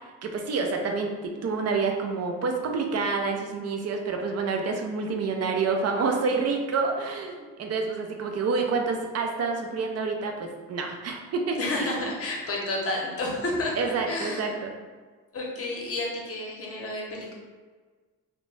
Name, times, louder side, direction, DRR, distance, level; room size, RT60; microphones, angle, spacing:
voice 1, 0.2-12.1 13.8-14.7, right 4 dB, 45° right, 3 dB, 0.5 m, -28 dB
voice 2, 11.6-14.5 15.3-17.3, left 2 dB, 40° left, -2 dB, 0.8 m, -31 dB
2.5 x 2.1 x 3.1 m, 1.4 s
cardioid pair, 70°, 35 cm